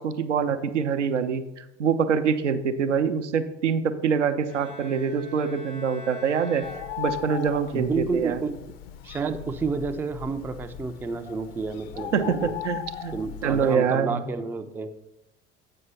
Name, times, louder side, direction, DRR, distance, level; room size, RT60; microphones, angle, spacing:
voice 1, 0.0-6.6 7.0-8.4 12.1-14.2, right 6 dB, 80° right, 10 dB, 0.6 m, -25 dB
Bowed string instrument, 4.5-7.6, left 1 dB, 85° left, 2.4 m, -44 dB
Bird, 6.6-13.7, left 11 dB, 50° left, 0.7 m, -38 dB
voice 2, 7.7-8.7 9.0-12.5 13.1-14.9, right 4 dB, 5° right, 7 dB, 0.3 m, -30 dB
7.9 x 5.6 x 5.4 m, 0.90 s
figure-of-eight pair, 70°, 35 cm